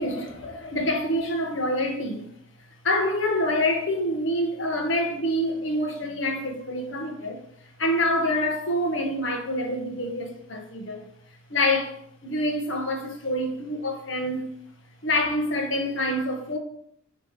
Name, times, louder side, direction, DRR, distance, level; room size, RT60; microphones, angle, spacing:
voice 1, 0.0-2.3 2.8-7.4 7.8-11.0 11.5-14.4 15.0-16.6, left 1 dB, 65° left, 1.3 m, -26 dB
9.9 x 3.3 x 4.8 m
head